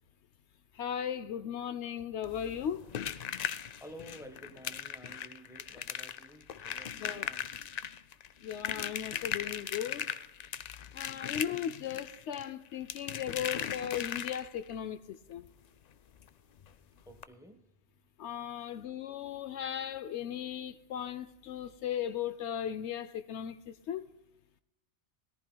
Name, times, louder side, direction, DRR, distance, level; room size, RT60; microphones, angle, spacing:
voice 1, 0.7-2.9 6.9-7.3 8.4-10.1 10.9-15.5 18.2-24.1, left 9 dB, 75° left, 0.9 m, -37 dB
sound 1, 2.2-14.7 16.2-16.3 16.6-16.7 17.1-17.2, left 8 dB, 55° left, 0.4 m, -39 dB
voice 2, 3.7-7.5 11.2-11.5 17.1-17.6, equal, 5° right, 1.1 m, -52 dB
17.5 x 14.0 x 2.3 m
omnidirectional pair, 1.2 m